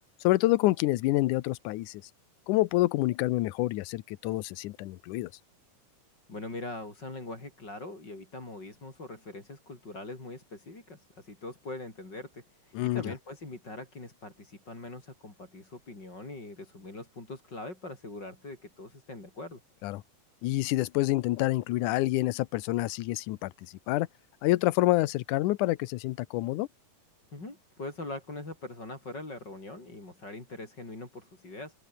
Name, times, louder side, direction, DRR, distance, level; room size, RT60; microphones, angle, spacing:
voice 1, 0.2-2.0 2.5-5.3 12.7-13.0 19.8-20.0 20.4-23.5 23.9-24.1 24.4-26.7, left 18 dB, 75° left, 2.2 m, -27 dB
voice 2, 6.3-19.6 27.3-31.7, left 2 dB, 30° left, 6.5 m, -42 dB
omnidirectional pair, 3.9 m